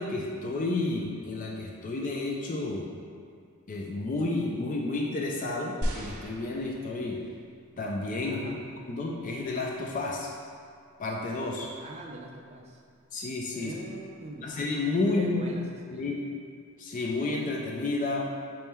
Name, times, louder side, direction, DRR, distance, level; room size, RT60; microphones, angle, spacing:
voice 1, 0.0-2.9 3.7-7.2 7.8-8.5 8.9-10.3 11.0-11.7 13.1-13.7 14.4-15.6 15.9-16.2 16.8-18.3, left 2 dB, 35° left, -1 dB, 0.4 m, -31 dB
sound 1, 5.8-7.3 8.1-8.2, equal, 80° right, 0.7 m, -35 dB
voice 2, 8.3-8.6 11.7-12.8 13.5-14.5 15.1-15.7 15.9-16.2, right 2 dB, 30° right, 0 dB, 0.4 m, -43 dB
4.2 x 3.1 x 3.6 m, 2.3 s
head